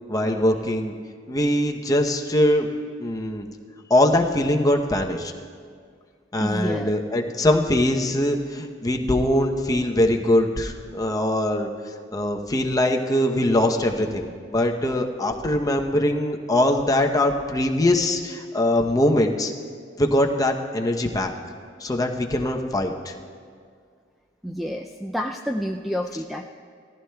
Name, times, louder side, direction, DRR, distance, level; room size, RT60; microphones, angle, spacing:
voice 1, 0.1-0.9 1.3-2.7 3.0-3.5 3.9-5.3 6.3-11.7 12.1-19.5 20.0-21.3 21.8-23.1, left 1 dB, 20° left, 3 dB, 0.7 m, -22 dB
voice 2, 6.4-6.9 24.4-26.4, equal, ahead, 1 dB, 0.3 m, -29 dB
19.0 x 14.5 x 2.3 m, 2.1 s
head